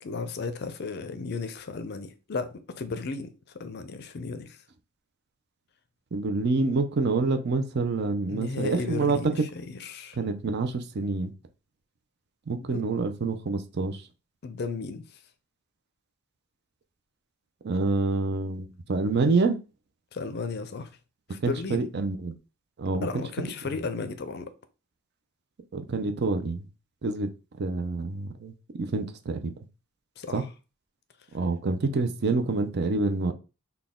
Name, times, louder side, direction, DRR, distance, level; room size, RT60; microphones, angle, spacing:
voice 1, 0.0-3.3 3.6-4.6 8.3-10.2 12.7-12.8 14.4-15.0 20.1-20.9 21.3-21.9 22.9-24.5 30.2-30.5, left 4 dB, 50° left, 0.5 m, -34 dB
voice 2, 6.1-9.2 10.2-11.3 12.5-14.0 17.6-19.6 21.4-22.3 22.8-23.1 25.7-26.6 27.0-27.3 27.6-29.5 30.3-30.4 31.3-33.3, right 3 dB, 50° right, 0.5 m, -27 dB
4.0 x 2.3 x 3.5 m
head